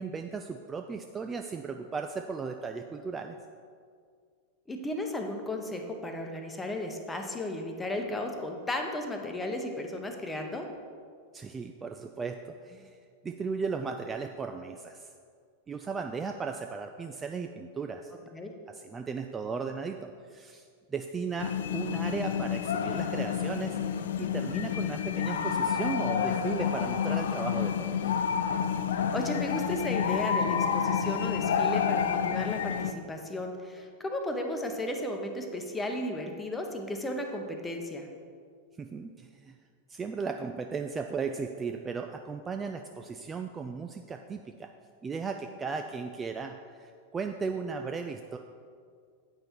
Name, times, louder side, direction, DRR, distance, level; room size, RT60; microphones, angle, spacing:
voice 1, 0.0-3.4 11.3-13.0 13.2-15.1 15.7-18.1 18.7-23.8 24.2-28.1 38.8-39.6 39.9-44.7 45.0-48.4, right 5 dB, 20° right, 5 dB, 0.3 m, -36 dB
voice 2, 4.7-10.7 18.3-18.5 29.1-38.1, left 1 dB, 10° left, 3 dB, 0.9 m, -34 dB
sound 1, 21.4-32.9, left 7 dB, 60° left, 0.4 m, -29 dB
8.8 x 5.5 x 4.4 m, 2.1 s
figure-of-eight pair, 90°, 0 cm